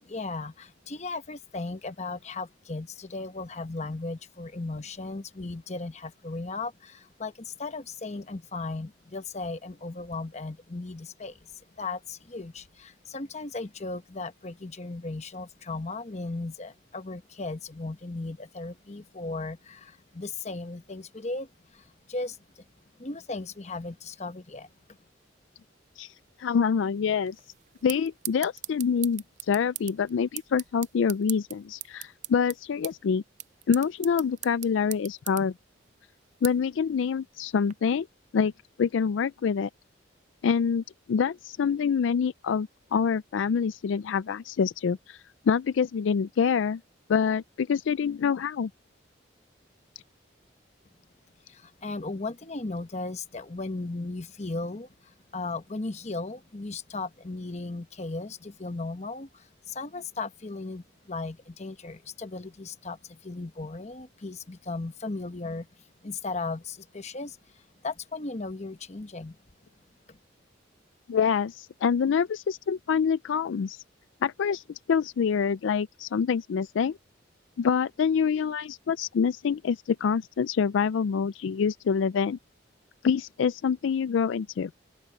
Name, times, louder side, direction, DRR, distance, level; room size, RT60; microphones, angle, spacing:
voice 1, 0.0-11.5 11.8-22.6 23.0-24.7 51.5-65.7 66.0-69.4 70.1-70.2, left 3 dB, 35° left, 1.0 m, -36 dB
voice 2, 26.4-27.4 27.8-33.2 33.7-35.5 36.4-38.1 38.3-38.5 38.8-39.7 40.4-45.2 45.5-46.8 47.1-48.7 71.1-73.8 74.2-74.6 74.9-77.0 77.6-82.4 83.0-84.7, left 6 dB, 75° left, 0.4 m, -26 dB
sound 1, 27.3-37.7, right 14 dB, 40° right, 0.5 m, -42 dB
open air
head